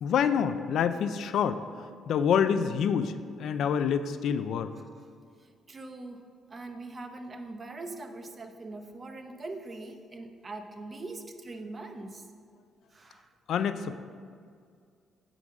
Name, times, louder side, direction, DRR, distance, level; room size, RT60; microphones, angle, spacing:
voice 1, 0.0-1.6 2.1-3.1 3.4-4.7 13.5-14.1, left 7 dB, 75° left, 11 dB, 0.4 m, -27 dB
voice 2, 5.4-6.2 6.5-12.2 12.9-13.3, right 2 dB, 35° right, 5 dB, 0.8 m, -42 dB
9.1 x 3.9 x 6.3 m, 2.2 s
cardioid pair, 90°, 0 cm